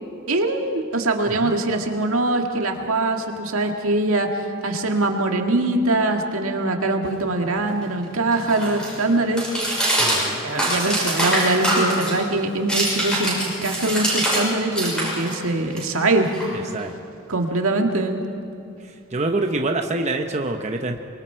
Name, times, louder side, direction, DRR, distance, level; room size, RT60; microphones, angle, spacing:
voice 1, 0.3-9.5 10.4-16.3 17.3-18.2, right 2 dB, 85° right, 3 dB, 1.9 m, -22 dB
sound 1, 7.1-14.5 14.7-16.9, right 1 dB, 5° left, 6.4 m, -25 dB
voice 2, 10.0-10.4 16.7-17.0 18.8-21.0, right 2 dB, 35° right, 4 dB, 0.9 m, -26 dB
25.0 x 23.5 x 4.6 m, 2.5 s
head